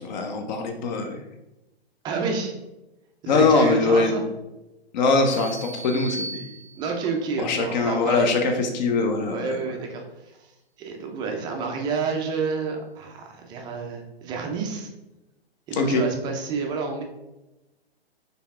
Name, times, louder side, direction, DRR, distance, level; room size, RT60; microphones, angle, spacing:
voice 1, 0.1-1.2 3.3-4.1 4.9-6.4 7.4-9.6 15.8-16.0, left 3 dB, 45° left, 5 dB, 0.8 m, -22 dB
voice 2, 2.0-2.5 3.2-4.2 6.7-8.3 9.3-10.0 10.8-14.9 15.7-17.0, right 4 dB, 15° right, 3 dB, 0.4 m, -29 dB
sound 1, 5.3-7.1, right 2 dB, 80° left, 1.4 m, -37 dB
4.3 x 3.4 x 3.5 m, 0.98 s
hypercardioid pair, 125°, 31 cm